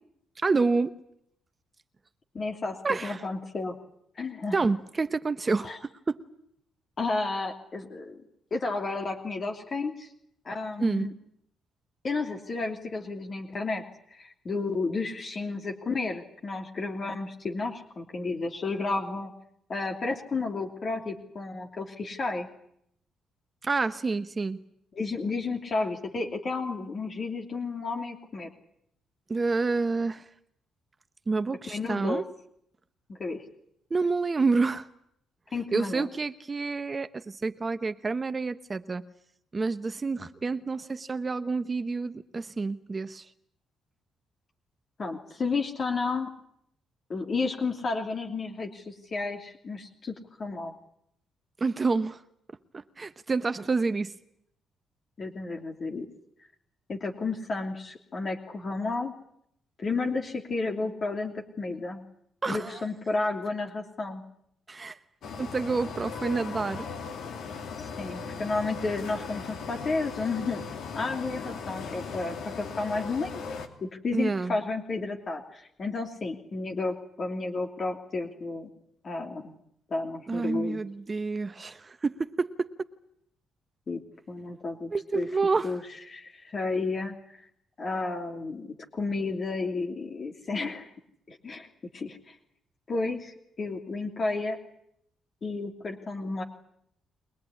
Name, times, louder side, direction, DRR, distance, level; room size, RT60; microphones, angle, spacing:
voice 1, 0.4-0.9 2.8-3.2 4.5-5.7 6.1-6.2 10.8-11.1 23.6-24.6 29.3-30.2 31.3-32.3 33.9-34.9 35.7-39.0 39.5-43.2 51.6-52.2 52.7-54.1 62.4-62.8 64.7-65.0 65.4-66.9 74.1-74.5 80.3-82.7 84.9-85.7, right 4 dB, 30° right, 11 dB, 1.0 m, -28 dB
voice 2, 2.3-3.7 4.1-4.6 5.6-5.8 7.0-8.2 8.5-10.1 10.4-11.1 12.0-13.8 14.1-19.3 19.7-22.5 24.9-28.5 31.7-32.2 33.1-33.4 35.5-36.1 45.0-46.3 47.1-50.1 50.4-50.7 55.2-56.1 56.9-59.1 59.8-62.0 62.5-64.2 67.8-70.6 70.9-73.4 73.8-78.7 79.0-79.6 79.9-80.8 83.9-84.0 84.3-85.3 85.6-85.8 86.1-87.4 87.8-90.9 91.3-91.7 91.9-92.4 92.9-94.6 95.4-96.4, left 3 dB, 40° left, 2 dB, 2.9 m, -32 dB
sound 1, 65.2-73.7, left 5 dB, 75° left, 2.9 m, -38 dB
23.5 x 20.0 x 9.8 m, 0.74 s
cardioid pair, 90°, 0 cm